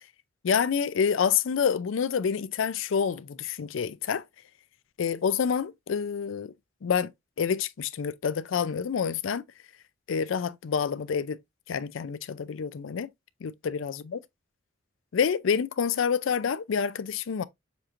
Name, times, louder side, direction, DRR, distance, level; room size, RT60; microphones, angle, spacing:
voice 1, 0.4-4.2 5.0-6.5 6.8-7.1 7.4-9.4 10.1-11.4 11.7-13.1 13.4-14.2 15.1-17.4, left 6 dB, 75° left, 0.4 m, -27 dB
7.0 x 3.0 x 2.5 m
head